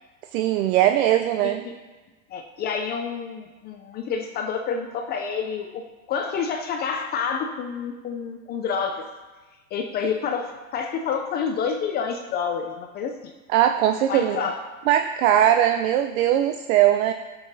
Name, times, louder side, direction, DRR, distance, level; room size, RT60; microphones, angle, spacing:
voice 1, 0.3-1.6 13.5-14.4 14.9-17.1, right 11 dB, 70° right, 7 dB, 0.5 m, -20 dB
voice 2, 1.4-1.7 2.3-5.8 6.1-9.1 9.7-13.3 14.1-14.6, left 6 dB, 25° left, 5 dB, 0.3 m, -28 dB
10.5 x 7.1 x 2.6 m, 1.3 s
hypercardioid pair, 115°, 43 cm